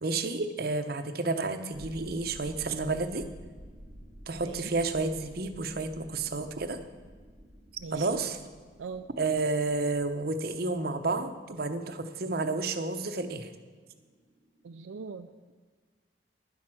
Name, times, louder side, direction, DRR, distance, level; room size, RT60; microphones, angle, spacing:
voice 1, 0.0-3.3 4.3-6.8 7.9-8.4 9.2-13.5, right 3 dB, 50° right, 9 dB, 0.7 m, -31 dB
sound 1, 1.7-15.0, equal, 10° left, 1.8 m, -52 dB
voice 2, 7.8-8.2 8.8-9.0 14.6-15.3, right 5 dB, 85° right, 8 dB, 0.4 m, -41 dB
10.5 x 7.6 x 6.1 m, 1.5 s
head